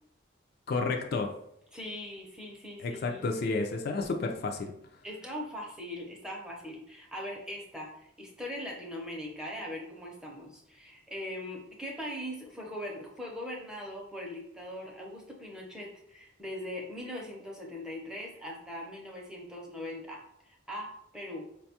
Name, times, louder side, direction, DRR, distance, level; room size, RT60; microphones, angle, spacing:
voice 1, 0.7-1.3 2.8-4.7, left 3 dB, 50° left, 3 dB, 0.3 m, -31 dB
voice 2, 1.7-3.4 5.0-21.4, left 1 dB, 5° right, -1 dB, 0.6 m, -41 dB
4.7 x 2.2 x 2.8 m, 0.77 s
head